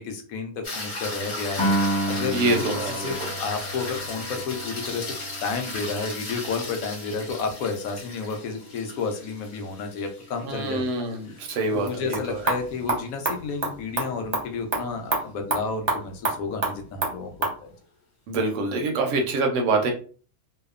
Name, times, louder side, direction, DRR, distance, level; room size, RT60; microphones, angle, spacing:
voice 1, 0.0-1.7 2.1-3.1 3.4-5.1 5.4-10.9 11.3-11.4 11.7-17.7, left 4 dB, 75° left, 4 dB, 1.0 m, -31 dB
sound 1, 0.6-13.0 17.5-17.6, left 2 dB, 50° left, 1.2 m, -36 dB
Piano, 1.6-8.0, right 1 dB, 25° left, 0.4 m, -31 dB
voice 2, 2.3-3.1 10.4-12.4 18.3-19.9, right 2 dB, 70° right, 3 dB, 0.8 m, -25 dB
sound 2, 11.9-17.6, right 3 dB, 40° right, 0.6 m, -30 dB
2.7 x 2.0 x 2.3 m, 0.41 s
omnidirectional pair, 1.5 m